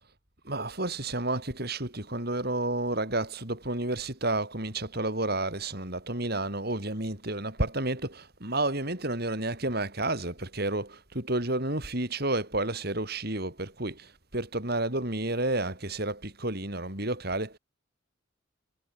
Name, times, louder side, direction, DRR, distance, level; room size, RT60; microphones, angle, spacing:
voice 1, 0.4-17.6, right 2 dB, 50° right, 5.6 m, -31 dB
head